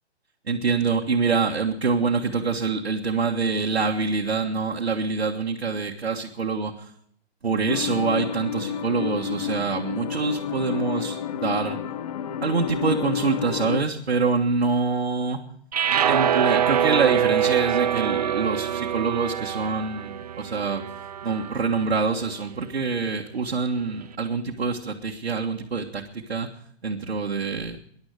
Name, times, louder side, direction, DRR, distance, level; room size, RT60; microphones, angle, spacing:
voice 1, 0.5-6.9 7.4-11.8 12.4-15.4 16.1-20.8 21.2-26.5 26.8-27.8, right 4 dB, 60° right, 0 dB, 1.7 m, -25 dB
sound 1, 7.7-13.8, left 8 dB, 35° left, 0.7 m, -30 dB
sound 2, 15.7-22.0, right 9 dB, 35° right, 0.5 m, -24 dB
21.0 x 11.5 x 4.9 m, 0.66 s
figure-of-eight pair, 130°, 33 cm